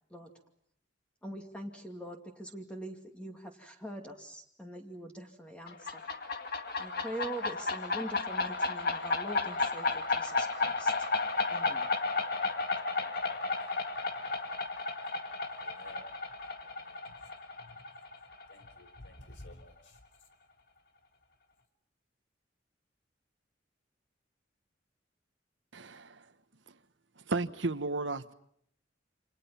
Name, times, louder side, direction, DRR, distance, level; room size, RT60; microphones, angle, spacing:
voice 1, 1.2-6.1 6.8-10.9 11.5-11.9, right 1 dB, 5° left, 2.4 m, -43 dB
sound 1, 5.7-19.1, left 3 dB, 55° left, 2.1 m, -33 dB
voice 2, 13.9-14.3 15.5-16.2 16.6-17.3 17.6-17.9 18.5-20.0, left 1 dB, 85° left, 3.7 m, -54 dB
voice 3, 25.7-26.3 27.3-28.3, right 3 dB, 75° right, 1.3 m, -33 dB
28.5 x 27.0 x 5.8 m
head